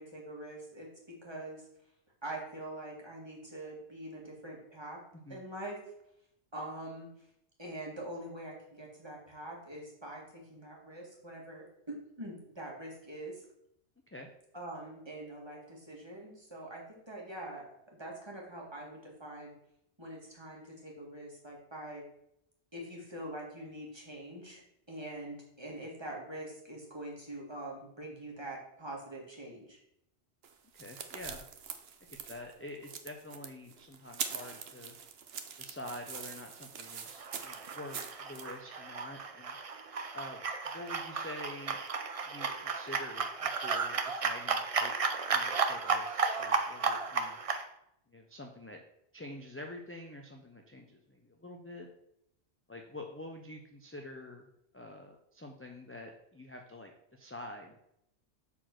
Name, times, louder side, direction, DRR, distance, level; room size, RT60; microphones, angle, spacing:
voice 1, 0.0-1.6 2.2-5.0 5.3-5.8 6.5-7.1 7.6-13.4 14.5-19.5 20.0-22.0 22.7-24.6 24.9-29.8, right 1 dB, 25° right, -2 dB, 2.1 m, -44 dB
voice 2, 5.1-5.4 14.1-14.3 30.8-31.4 32.3-35.0 35.6-39.6 40.1-40.4 40.7-41.8 42.2-44.9 45.3-47.4 48.1-48.8 49.1-51.9 52.7-54.5 54.7-57.8, left 1 dB, 15° left, 2 dB, 0.6 m, -47 dB
sound 1, 30.4-38.5, right 7 dB, 65° right, 1.0 m, -43 dB
sound 2, 37.2-47.6, right 4 dB, 40° right, 0.6 m, -34 dB
7.1 x 4.4 x 6.0 m, 0.78 s
omnidirectional pair, 1.2 m